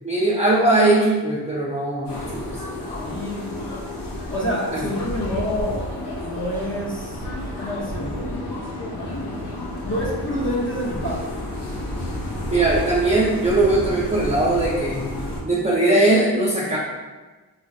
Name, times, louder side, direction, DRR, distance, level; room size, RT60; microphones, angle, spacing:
voice 1, 0.0-2.6 4.7-4.9 12.5-15.1 15.4-16.8, right 2 dB, 15° right, -6 dB, 0.5 m, -20 dB
sound 1, 2.0-15.4, left 1 dB, 70° left, 0.7 m, -31 dB
voice 2, 3.0-3.7 4.3-5.9 6.2-7.2 7.6-8.3 9.8-11.4, equal, 30° left, -5 dB, 0.7 m, -27 dB
3.1 x 2.3 x 2.6 m, 1.3 s
cardioid pair, 60°, 41 cm